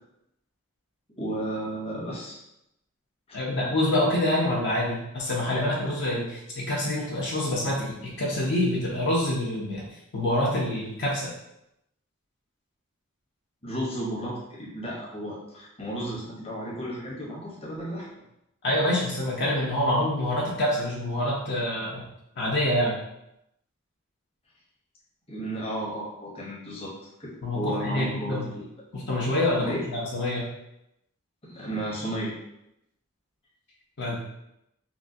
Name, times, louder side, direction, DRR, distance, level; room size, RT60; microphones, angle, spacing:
voice 1, 1.2-2.4 13.6-18.1 25.3-26.9 27.2-28.6 29.6-29.9 31.4-32.4, right 1 dB, 30° left, -6 dB, 0.9 m, -33 dB
voice 2, 3.3-9.8 10.1-11.3 18.6-22.0 22.4-23.0 27.4-28.5 28.9-30.5 34.0-34.2, left 1 dB, 55° left, -5 dB, 0.7 m, -26 dB
3.7 x 2.2 x 2.6 m, 0.84 s
head